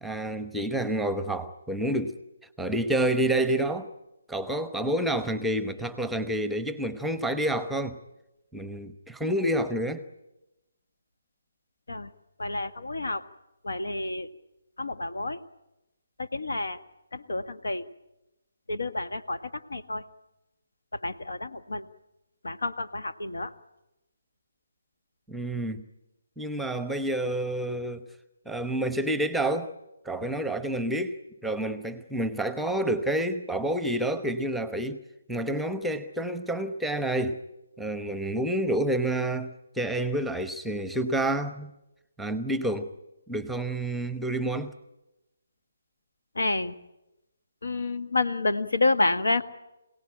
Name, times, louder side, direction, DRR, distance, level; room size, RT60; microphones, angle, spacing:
voice 1, 0.0-2.1 2.6-3.9 4.3-8.0 8.5-10.0 25.3-25.8 26.4-28.0 28.5-29.7 30.0-31.2 31.4-35.0 35.3-37.4 37.8-41.7 42.2-42.9 43.3-44.7, right 1 dB, ahead, 11 dB, 1.0 m, -28 dB
voice 2, 12.4-13.2 13.6-14.3 14.8-15.4 16.2-16.8 17.1-17.8 18.7-19.4 19.7-20.0 21.0-21.8 22.4-23.5 46.4-46.7 47.6-49.4, left 2 dB, 80° left, 9 dB, 1.6 m, -29 dB
26.5 x 18.0 x 10.0 m, 0.98 s
figure-of-eight pair, 150°, 0 cm